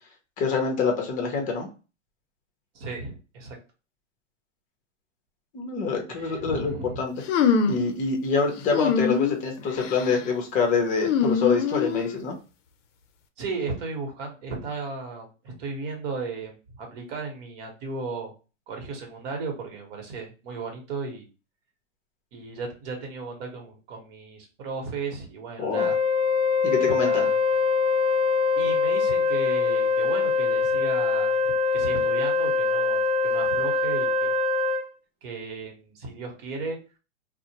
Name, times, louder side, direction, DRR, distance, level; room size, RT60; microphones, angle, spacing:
voice 1, 0.4-1.7 5.5-7.1 7.7-12.4 25.6-25.9 26.6-27.2, left 4 dB, 20° left, 3 dB, 0.7 m, -26 dB
voice 2, 2.7-3.6 6.1-7.0 13.4-18.3 18.7-21.3 22.3-26.0 26.8-27.4 28.6-34.3 35.2-36.8, right 4 dB, 45° right, 2 dB, 1.1 m, -35 dB
sound 1, 7.3-7.9 8.7-9.4 9.8-10.2 11.0-12.2, left 6 dB, 70° left, 0.6 m, -24 dB
Wind instrument woodwind instrument, 25.7-34.9, left 4 dB, 20° right, 0.4 m, -23 dB
2.4 x 2.1 x 2.8 m, 0.32 s
hypercardioid pair, 140°, 39 cm